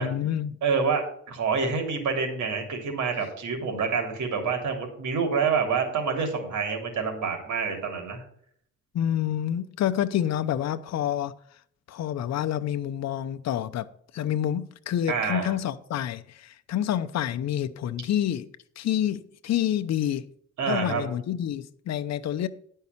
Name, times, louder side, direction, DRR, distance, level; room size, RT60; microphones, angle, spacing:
voice 1, 0.0-0.5 8.9-11.4 11.9-13.9 14.1-18.5 18.8-20.3 20.7-22.5, left 10 dB, 60° left, 0.8 m, -28 dB
voice 2, 0.6-8.2 15.1-15.5 20.6-21.0, right 5 dB, 70° right, 3.3 m, -27 dB
10.5 x 5.5 x 7.1 m
cardioid pair, 90°, 30 cm